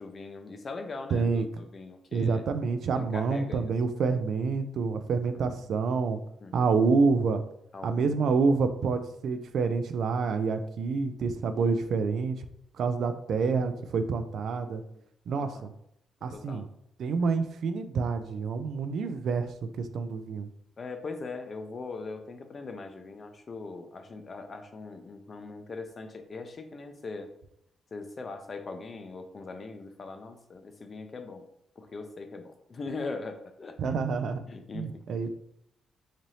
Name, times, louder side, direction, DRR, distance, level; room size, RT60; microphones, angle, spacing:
voice 1, 0.0-2.4 2.9-3.7 5.3-5.5 6.4-6.6 7.7-8.2 11.5-11.7 15.4-15.7 16.3-16.6 17.2-17.3 20.8-27.3 27.9-31.4 31.8-35.1, left 3 dB, 45° left, 7 dB, 0.5 m, -41 dB
voice 2, 1.1-1.4 2.1-6.2 6.5-7.4 7.8-12.5 12.8-14.8 15.3-15.7 16.2-16.7 17.0-19.5 19.8-20.5 33.8-34.4 34.7-35.3, right 4 dB, 70° right, 10 dB, 0.3 m, -27 dB
4.0 x 2.7 x 3.1 m, 0.75 s
cardioid pair, 75°, 0 cm